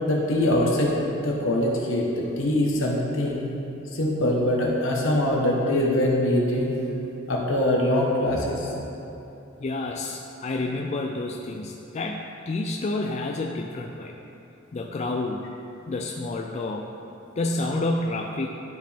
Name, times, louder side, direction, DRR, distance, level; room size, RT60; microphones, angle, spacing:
voice 1, 0.1-1.0 1.2-3.5 3.9-6.7 7.3-8.7, left 1 dB, 70° left, -2 dB, 1.3 m, -23 dB
voice 2, 9.6-14.2 14.7-15.4 15.9-16.9 17.4-18.5, left 2 dB, 35° left, 2 dB, 0.4 m, -29 dB
12.0 x 5.0 x 3.6 m, 3.0 s
head